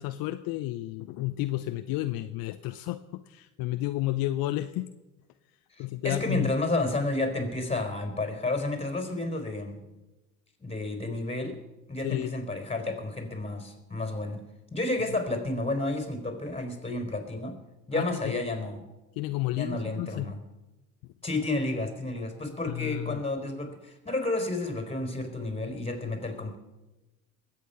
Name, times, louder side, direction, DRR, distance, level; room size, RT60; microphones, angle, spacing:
voice 1, 0.0-4.9 5.8-6.5 12.0-12.3 17.9-18.3 19.2-20.3 21.0-21.1 22.7-23.2, left 16 dB, 60° left, 10 dB, 0.7 m, -31 dB
voice 2, 5.8-9.8 10.6-11.6 11.9-14.4 14.7-17.6 17.9-18.8 19.5-20.4 21.2-26.6, left 2 dB, 15° left, 6 dB, 3.8 m, -31 dB
21.5 x 8.4 x 5.6 m, 1.1 s
hypercardioid pair, 70°, 39 cm